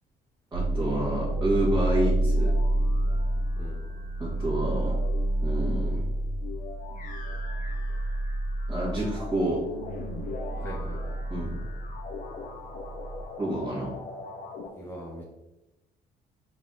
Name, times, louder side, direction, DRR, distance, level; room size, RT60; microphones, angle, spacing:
voice 1, 0.5-2.5 4.2-5.0 5.4-6.0 8.7-9.6 11.3-11.6 13.4-13.9, right 1 dB, 15° right, -9 dB, 1.4 m, -28 dB
sound 1, 0.5-13.3, right 1 dB, 60° right, 1.2 m, -29 dB
sound 2, 0.6-14.7, left 3 dB, 50° left, 0.8 m, -42 dB
voice 2, 10.5-11.2 14.8-15.3, equal, 15° left, -4 dB, 0.8 m, -41 dB
4.0 x 2.7 x 3.7 m, 0.98 s
cardioid pair, 110°, 17 cm